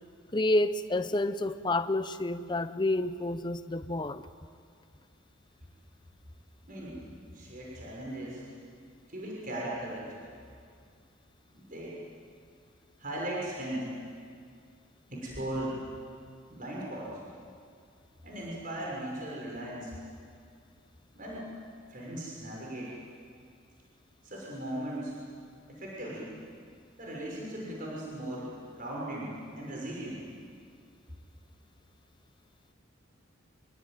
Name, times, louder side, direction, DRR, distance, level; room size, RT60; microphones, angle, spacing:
voice 1, 0.3-4.3, left 2 dB, 20° left, 11 dB, 0.8 m, -29 dB
voice 2, 6.7-7.0 7.3-8.4 9.1-10.1 11.5-11.9 13.0-13.9 15.1-15.8 16.5-17.1 18.2-19.9 21.1-21.5 21.9-22.9 24.2-25.1 25.7-26.3 27.0-28.5 28.7-30.2, right 1 dB, 40° right, -4 dB, 6.3 m, -38 dB
26.0 x 23.5 x 9.2 m, 2.2 s
head